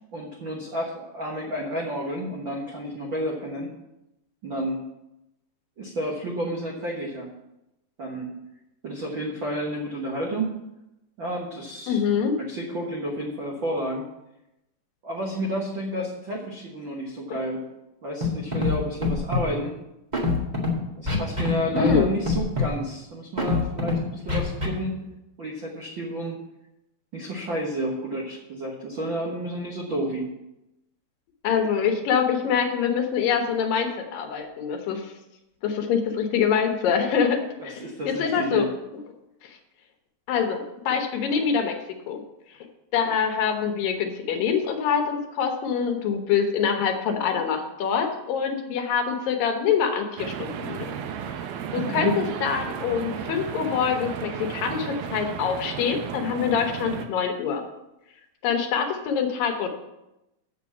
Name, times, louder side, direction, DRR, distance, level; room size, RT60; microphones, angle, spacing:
voice 1, 0.1-3.7 4.4-4.8 5.8-7.3 8.0-8.4 8.8-10.5 11.2-12.0 12.4-14.0 15.0-17.6 18.0-19.7 21.0-25.0 25.4-26.4 27.1-30.3 37.6-38.6 51.8-52.2, right 1 dB, 65° right, -2 dB, 1.1 m, -31 dB
voice 2, 11.9-12.4 21.7-22.1 31.4-35.1 35.6-38.7 39.4-39.6 40.3-41.8 42.1-42.2 42.9-50.9 51.7-57.6 58.4-59.7, left 7 dB, 75° left, 4 dB, 2.6 m, -25 dB
Scratching (performance technique), 18.2-18.3 18.5-18.7 19.0-19.4 20.1-20.7 21.1-21.5 21.8-22.0 22.2-22.7 23.4-23.9 24.3-24.7, left 3 dB, 25° right, 0.9 m, -24 dB
sound 1, 50.2-57.1, right 8 dB, 85° right, 2.7 m, -34 dB
7.4 x 7.1 x 7.1 m, 0.91 s
omnidirectional pair, 4.3 m